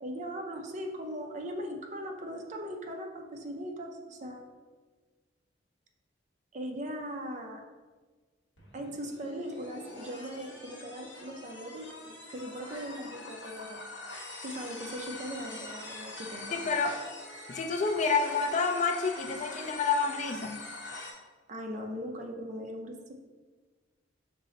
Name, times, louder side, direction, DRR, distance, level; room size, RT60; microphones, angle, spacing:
voice 1, 0.0-4.5 6.5-7.7 8.7-13.8 14.4-16.7 21.5-23.1, equal, 40° right, 3 dB, 0.5 m, -39 dB
sound 1, 8.6-21.1, left 2 dB, 80° left, 1.0 m, -44 dB
voice 2, 16.5-17.0 17.5-20.7, left 4 dB, 40° left, 3 dB, 0.3 m, -29 dB
5.4 x 2.0 x 3.7 m, 1.3 s
head